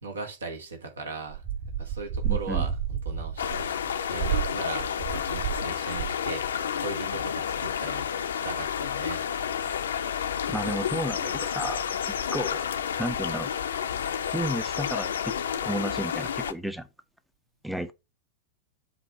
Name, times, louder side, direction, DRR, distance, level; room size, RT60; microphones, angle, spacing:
voice 1, 0.0-3.4 4.1-6.4 6.8-8.1 8.3-9.7, right 3 dB, 70° right, 1.4 m, -38 dB
sound 1, 1.3-5.7 5.9-6.3, right 8 dB, 45° right, 3.3 m, -31 dB
voice 2, 2.2-2.7 10.5-12.6 13.0-13.5 14.3-15.3 15.6-16.9 17.6-17.9, right 1 dB, ahead, 0.5 m, -32 dB
sound 2, 3.4-16.5, left 8 dB, 65° left, 0.5 m, -30 dB
7.7 x 2.7 x 5.3 m
figure-of-eight pair, 90°, 0 cm